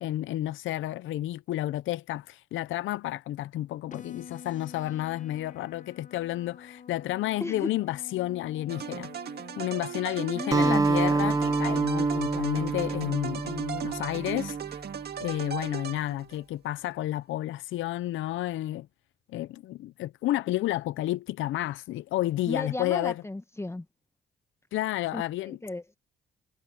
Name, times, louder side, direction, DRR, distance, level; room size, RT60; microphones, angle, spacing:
voice 1, 0.0-9.1 9.6-14.6 15.2-18.9 19.3-23.2 24.7-25.6, left 15 dB, 80° left, 0.6 m, -31 dB
sound 1, 3.9-11.9, left 7 dB, 40° left, 1.3 m, -48 dB
voice 2, 7.4-7.7 10.3-10.9 22.5-23.8 25.1-25.2 25.5-26.0, left 2 dB, 15° left, 1.2 m, -34 dB
sound 2, 8.7-16.4, right 7 dB, 55° right, 1.8 m, -37 dB
Acoustic guitar, 10.5-15.0, right 3 dB, 15° right, 0.7 m, -27 dB
cardioid pair, 90°, 20 cm